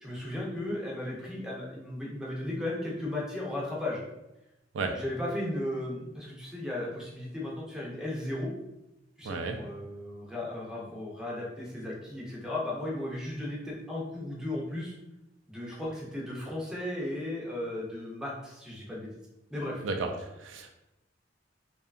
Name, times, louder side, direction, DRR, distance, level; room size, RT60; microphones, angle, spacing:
voice 1, 0.0-4.0 4.9-8.5 9.2-14.9 15.5-19.1 19.5-19.8, left 1 dB, 5° right, -4 dB, 0.5 m, -35 dB
voice 2, 9.2-9.6 19.8-20.1 20.4-20.7, right 4 dB, 80° right, 4 dB, 0.3 m, -32 dB
2.7 x 2.2 x 2.4 m, 0.93 s
head